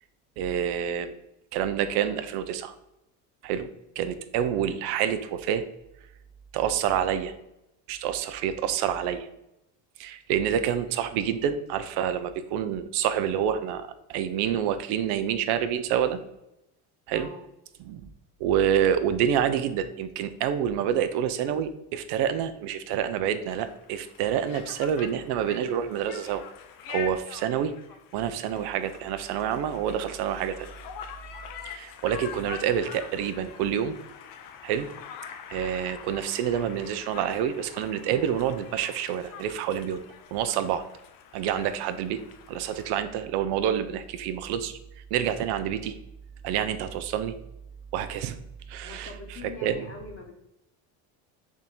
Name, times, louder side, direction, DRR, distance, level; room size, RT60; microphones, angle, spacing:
voice 1, 0.4-1.1 1.5-2.7 3.4-3.7 4.0-5.6 6.5-7.3 7.9-9.3 10.0-16.2 17.1-17.3 17.8-18.0 18.4-26.4 26.9-27.7 28.1-30.7 31.6-34.0 34.6-34.9 35.5-40.0 40.3-40.8 41.3-42.2 42.5-44.8 45.1-45.9 46.4-47.3 47.9-48.4 48.7-49.9, right 9 dB, 65° right, 10 dB, 0.5 m, -27 dB
Conversation, 23.5-43.0, left 7 dB, 50° left, 0.5 m, -45 dB
voice 2, 48.8-50.3, left 4 dB, 30° left, 2 dB, 1.0 m, -43 dB
3.5 x 2.6 x 4.2 m, 0.88 s
supercardioid pair, 100°, 43 cm